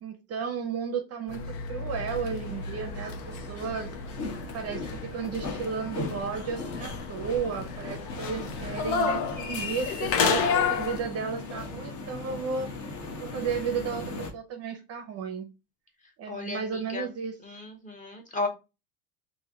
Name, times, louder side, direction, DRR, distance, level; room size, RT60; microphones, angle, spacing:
voice 1, 0.0-3.9 4.5-12.7 13.2-15.5 16.2-17.4, right 6 dB, 35° right, 6 dB, 0.6 m, -33 dB
sound 1, 1.3-11.0, left 5 dB, 75° left, 0.8 m, -32 dB
sound 2, 1.9-14.3, left 3 dB, 40° left, 1.0 m, -38 dB
voice 2, 16.3-17.1 17.4-18.5, left 3 dB, 15° left, 3 dB, 0.8 m, -34 dB
3.2 x 2.6 x 3.6 m, 0.27 s
cardioid pair, 135°, 44 cm